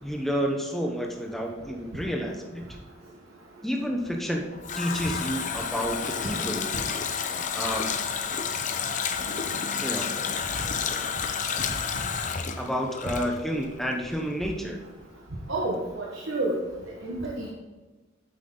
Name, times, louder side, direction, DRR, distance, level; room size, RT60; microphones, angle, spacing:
voice 1, 0.0-2.6 3.6-4.4 4.8-6.7 7.5-7.8 9.8-10.1 12.6-14.8, equal, ahead, 1 dB, 0.9 m, -30 dB
Water tap faucet, 4.2-13.8 14.1-14.2, left 6 dB, 40° left, 0.6 m, -30 dB
voice 2, 15.5-16.6 17.0-17.5, right 2 dB, 65° right, -4 dB, 1.3 m, -29 dB
8.8 x 8.2 x 3.9 m, 1.2 s
head